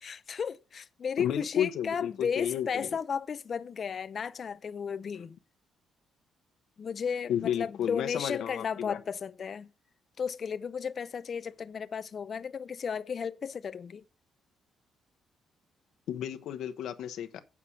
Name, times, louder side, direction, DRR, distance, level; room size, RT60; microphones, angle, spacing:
voice 1, 0.0-5.4 6.8-9.7 10.2-14.0, left 6 dB, 50° left, 0.6 m, -34 dB
voice 2, 1.2-2.9 7.3-9.0 16.1-17.4, left 10 dB, 75° left, 1.0 m, -32 dB
8.4 x 4.9 x 7.2 m
cardioid pair, 90°, 0 cm